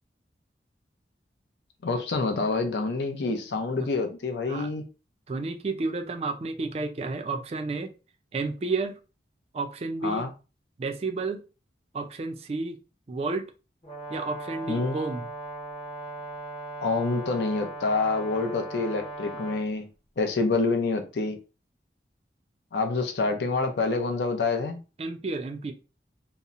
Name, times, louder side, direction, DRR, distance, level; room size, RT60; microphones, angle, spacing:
voice 1, 1.8-4.8 10.0-10.3 14.7-15.0 16.8-19.9 20.2-21.4 22.7-24.8, left 3 dB, 75° left, 0.5 m, -27 dB
voice 2, 5.3-7.9 8.3-8.9 9.5-10.3 10.8-11.4 11.9-12.8 13.1-13.5 14.1-15.3 25.0-25.7, right 3 dB, 35° right, 0.3 m, -31 dB
Brass instrument, 13.8-19.7, right 2 dB, 30° left, 0.7 m, -38 dB
2.7 x 2.0 x 2.4 m
head